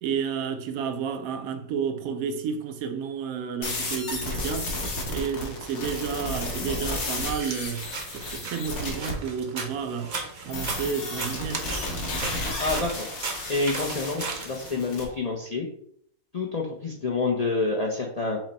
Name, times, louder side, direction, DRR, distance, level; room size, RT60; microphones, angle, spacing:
voice 1, 0.0-4.7 5.1-10.1 10.4-11.6, right 6 dB, 85° right, 1.0 m, -31 dB
sound 1, 3.6-9.1 10.5-15.0, left 2 dB, 85° left, 1.4 m, -33 dB
sound 2, 7.4-15.0, right 4 dB, 45° right, 0.6 m, -37 dB
voice 2, 12.6-13.1 13.5-15.7 16.3-18.4, left 3 dB, 55° left, 0.4 m, -28 dB
5.9 x 2.1 x 4.0 m
omnidirectional pair, 1.5 m